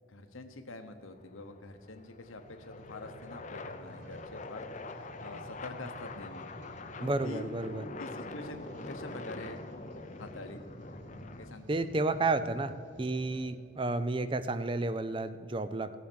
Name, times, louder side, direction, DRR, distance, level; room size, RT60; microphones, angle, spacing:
voice 1, 0.1-4.7 5.0-6.5 7.0-7.5 8.0-9.6 10.2-10.6 11.4-11.8, left 2 dB, 85° left, 7 dB, 1.1 m, -46 dB
sound 1, 1.1-11.5, left 3 dB, 35° left, 0.6 m, -45 dB
sound 2, 2.4-13.7 14.3-14.4, right 1 dB, 60° right, 1.0 m, -52 dB
voice 2, 7.0-7.8 11.7-15.9, right 2 dB, 25° right, 12 dB, 0.4 m, -31 dB
16.0 x 7.1 x 6.3 m, 2.3 s
head